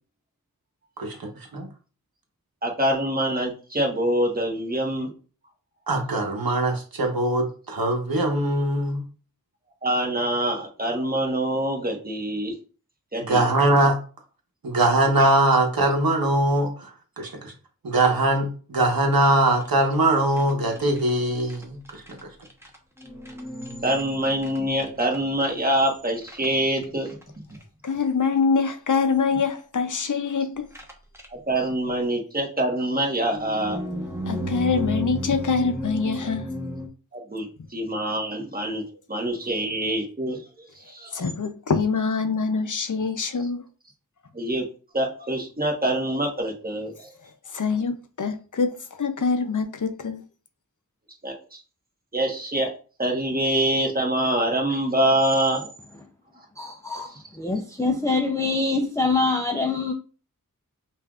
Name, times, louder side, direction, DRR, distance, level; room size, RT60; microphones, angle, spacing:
voice 1, 1.0-1.7 5.9-9.0 13.2-14.0 14.6-17.5 17.8-22.3, right 2 dB, 80° right, 0.9 m, -22 dB
voice 2, 2.6-5.1 9.8-12.5 13.1-13.5 23.8-27.1 31.3-33.8 37.1-38.8 39.1-41.3 44.3-44.6 44.9-47.1 51.2-51.6 52.1-52.7 53.0-55.7, right 1 dB, 25° right, 1.2 m, -25 dB
sound 1, 19.6-19.9 20.2-22.2 22.4-25.8 26.2-26.5 26.7-27.2 27.5-27.6 27.9-28.0 29.0-29.1 30.7-31.3 33.3-36.9, equal, 5° right, 0.9 m, -33 dB
voice 3, 27.8-30.7 34.3-36.5 41.1-43.6 47.5-50.2, left 5 dB, 60° left, 0.6 m, -24 dB
voice 4, 56.6-59.9, left 3 dB, 10° left, 0.4 m, -25 dB
5.5 x 2.5 x 2.4 m
wide cardioid pair, 50°, 35 cm